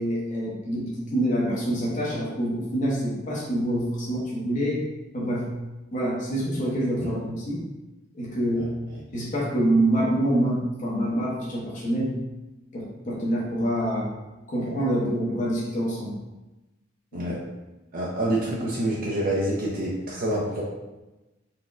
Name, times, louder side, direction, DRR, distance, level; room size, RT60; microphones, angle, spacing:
voice 1, 0.0-4.8 5.1-5.6 5.9-7.6 8.1-8.7 9.1-12.1 12.7-14.1 14.5-16.1 17.1-17.3, right 1 dB, 40° left, -6 dB, 0.8 m, -26 dB
voice 2, 17.9-20.6, right 1 dB, 45° right, -4 dB, 0.4 m, -27 dB
4.0 x 2.1 x 2.4 m, 1.1 s
head